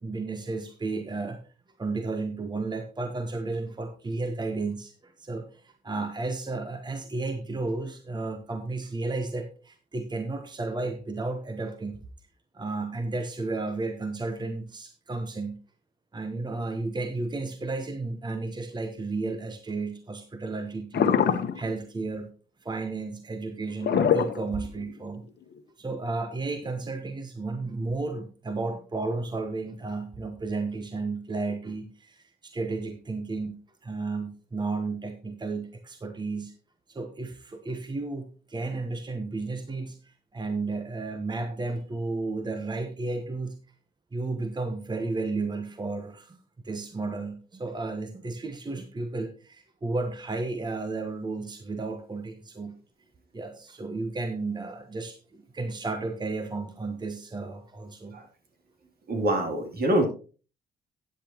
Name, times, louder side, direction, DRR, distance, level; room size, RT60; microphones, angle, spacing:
voice 1, 0.0-1.4 1.8-12.0 12.5-15.6 16.1-22.3 22.6-25.2 25.8-36.5 36.9-43.5 44.1-46.4 46.6-52.7 53.3-58.2, right 3 dB, 25° right, 7 dB, 1.1 m, -33 dB
sound 1, 20.9-21.7 23.8-24.9 25.6-25.7, left 7 dB, 70° left, 1.1 m, -23 dB
voice 2, 59.1-60.1, right 1 dB, 60° right, 3 dB, 3.1 m, -25 dB
13.0 x 9.0 x 3.0 m, 0.36 s
cardioid pair, 85°, 18 cm